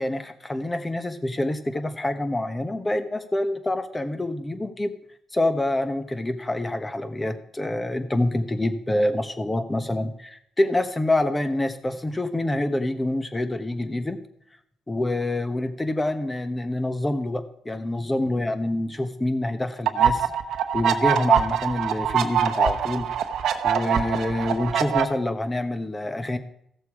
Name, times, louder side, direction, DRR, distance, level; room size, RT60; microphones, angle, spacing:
voice 1, 0.0-4.9 5.3-14.2 14.9-20.3 20.7-23.1 23.6-26.4, left 1 dB, 15° left, 9 dB, 1.2 m, -26 dB
sound 1, 19.9-25.0, right 8 dB, 75° right, 1.0 m, -23 dB
15.5 x 6.8 x 4.8 m, 0.73 s
cardioid pair, 90°, 0 cm